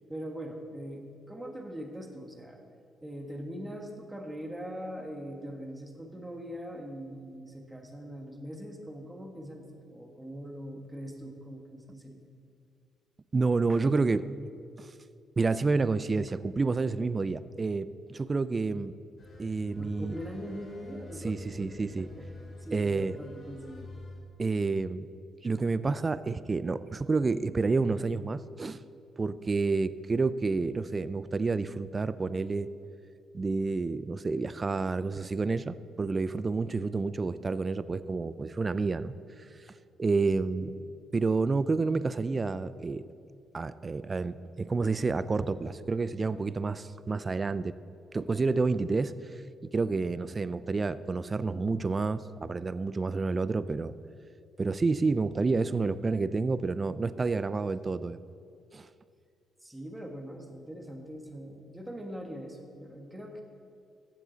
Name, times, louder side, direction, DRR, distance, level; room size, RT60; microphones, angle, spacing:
voice 1, 0.1-2.6 3.0-12.3 19.8-22.3 22.6-24.0 40.4-40.8 59.6-63.4, equal, 10° right, 3 dB, 1.4 m, -42 dB
voice 2, 13.3-14.3 14.8-14.9 15.4-18.9 19.4-20.2 21.2-22.1 22.7-23.2 24.4-25.1 25.4-28.8 29.2-32.7 33.3-39.5 40.0-40.7 41.1-43.1 43.5-47.8 48.1-49.4 49.7-53.9 54.6-58.2 58.7-58.9, right 4 dB, 30° right, 15 dB, 0.3 m, -29 dB
sound 1, 19.2-24.2, left 2 dB, 50° left, 3.0 m, -47 dB
14.5 x 7.4 x 4.0 m, 2.4 s
cardioid pair, 90°, 0 cm